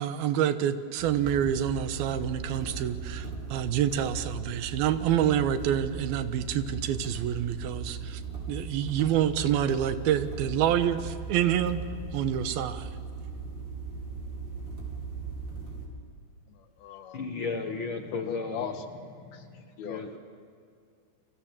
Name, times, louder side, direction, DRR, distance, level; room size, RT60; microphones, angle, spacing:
voice 1, 0.0-8.2 8.5-11.8 12.1-12.9, right 10 dB, 85° right, 11 dB, 2.9 m, -27 dB
sound 1, 1.0-15.9, right 5 dB, 35° right, 6.1 m, -38 dB
voice 2, 16.5-17.3 18.1-18.9 19.3-20.2, left 7 dB, 85° left, 7 dB, 3.6 m, -39 dB
voice 3, 17.1-18.7 19.2-19.5 19.8-20.2, left 4 dB, 60° left, 5 dB, 1.3 m, -34 dB
28.5 x 25.0 x 7.5 m, 2.3 s
omnidirectional pair, 4.3 m